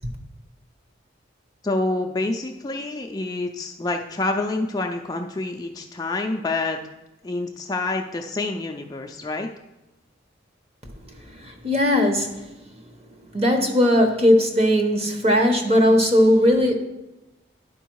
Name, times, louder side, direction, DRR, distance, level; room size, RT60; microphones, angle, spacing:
voice 1, 1.6-6.8 7.2-9.5, left 2 dB, 20° left, 3 dB, 0.3 m, -27 dB
voice 2, 11.0-12.5 12.7-12.9 13.3-16.7, left 1 dB, 30° right, 4 dB, 0.9 m, -19 dB
11.0 x 4.5 x 4.6 m, 1.0 s
head